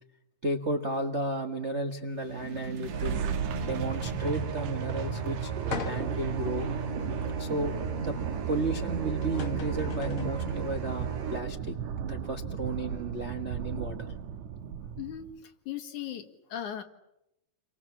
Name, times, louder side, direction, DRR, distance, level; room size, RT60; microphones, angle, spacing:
voice 1, 0.4-3.2 3.6-6.7 7.4-7.7 8.0-8.2 8.5-11.8 12.0-14.1, right 2 dB, 40° right, 3 dB, 0.9 m, -33 dB
sound 1, 2.2-15.3, right 8 dB, 70° right, 2.4 m, -35 dB
sound 2, 2.8-11.4, right 4 dB, 85° right, 4.4 m, -37 dB
sound 3, 5.7-6.3 6.9-7.0 8.8-8.9 9.2-10.4, left 7 dB, 50° left, 1.9 m, -39 dB
voice 2, 15.0-16.8, left 10 dB, 70° left, 6 dB, 3.1 m, -38 dB
29.5 x 24.0 x 7.3 m, 0.86 s
omnidirectional pair, 3.7 m